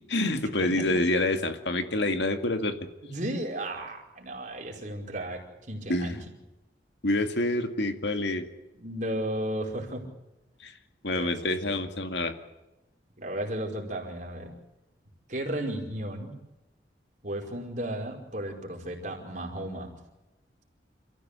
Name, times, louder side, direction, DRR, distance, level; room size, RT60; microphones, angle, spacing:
voice 1, 0.1-2.8 5.9-6.2 7.0-8.5 10.6-10.8 11.0-12.3, left 2 dB, 75° left, 7 dB, 2.2 m, -27 dB
voice 2, 3.0-6.2 8.8-10.1 11.1-11.8 13.2-14.5 15.3-16.3 17.2-19.9, right 1 dB, 45° right, 1 dB, 5.1 m, -34 dB
28.0 x 15.5 x 8.4 m, 1.0 s
head